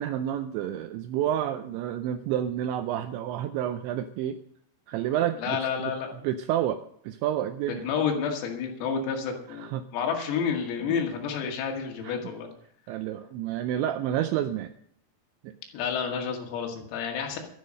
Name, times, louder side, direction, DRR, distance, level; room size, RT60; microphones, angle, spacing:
voice 1, 0.0-4.4 4.9-5.9 6.2-6.8 7.0-7.9 9.5-9.9 10.9-11.0 12.0-12.2 12.9-14.7 15.4-15.6, right 11 dB, 85° right, 9 dB, 2.6 m, -29 dB
voice 2, 5.4-6.2 7.7-12.5 15.7-17.4, left 6 dB, 90° left, 2 dB, 4.8 m, -30 dB
12.5 x 10.5 x 6.5 m, 0.67 s
omnidirectional pair, 5.9 m